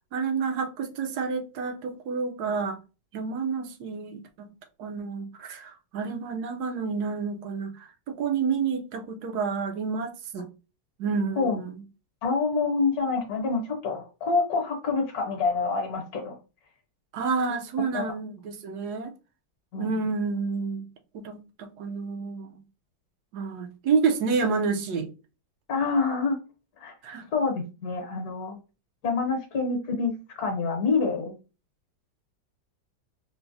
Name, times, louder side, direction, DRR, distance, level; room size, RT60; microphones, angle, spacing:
voice 1, 0.1-2.8 3.1-4.5 4.8-10.5 11.0-11.8 17.1-19.1 19.8-20.9 21.1-22.6 23.3-25.1 27.0-27.3, right 5 dB, 70° right, 1.0 m, -29 dB
voice 2, 12.2-16.4 17.9-18.0 19.7-19.9 25.7-26.4 26.8-26.9 27.3-28.6 29.0-31.3, left 4 dB, 60° left, 1.2 m, -27 dB
4.4 x 2.0 x 2.6 m
omnidirectional pair, 2.0 m